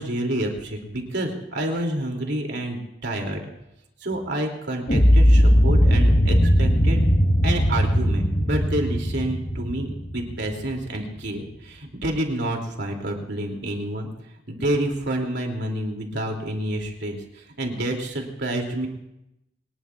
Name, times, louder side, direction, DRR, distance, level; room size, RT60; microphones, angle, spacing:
voice 1, 0.0-3.4 4.0-7.1 7.4-9.9 10.1-14.1 14.5-18.9, right 1 dB, 65° right, 1 dB, 2.9 m, -28 dB
sound 1, 4.9-10.9, equal, 50° left, 1.4 m, -19 dB
23.5 x 20.0 x 2.5 m, 0.85 s
head